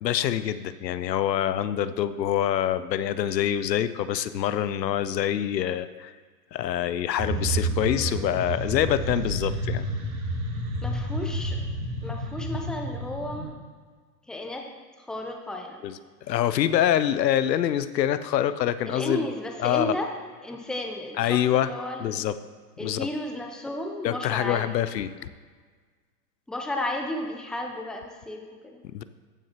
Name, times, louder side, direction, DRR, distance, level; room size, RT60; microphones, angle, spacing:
voice 1, 0.0-6.1 6.5-9.9 15.8-16.0 16.3-19.2 19.6-20.0 21.2-21.7 22.0-22.3 22.8-23.1 24.0-25.3 28.9-29.0, left 11 dB, 85° left, 14 dB, 0.6 m, -25 dB
sound 1, 7.2-13.5, right 1 dB, 50° right, 2.1 m, -30 dB
voice 2, 7.8-8.4 10.8-11.6 12.0-13.6 14.3-14.7 15.0-15.8 18.9-20.1 20.4-22.3 22.8-24.7 26.5-28.8, left 1 dB, ahead, 2 dB, 0.6 m, -33 dB
14.0 x 6.3 x 2.9 m, 1.5 s
hypercardioid pair, 110°, 49 cm